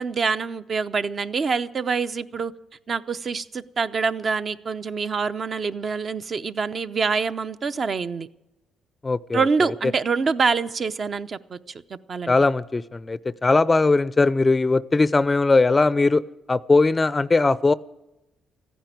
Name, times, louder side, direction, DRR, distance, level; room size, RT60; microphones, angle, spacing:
voice 1, 0.0-2.5 2.9-8.3 9.3-11.6 11.9-12.3, right 5 dB, 45° right, 11 dB, 0.7 m, -25 dB
voice 2, 9.0-9.5 12.3-16.2 16.5-17.7, left 3 dB, 25° left, 18 dB, 0.4 m, -19 dB
14.5 x 10.5 x 9.3 m, 0.93 s
cardioid pair, 90°, 0 cm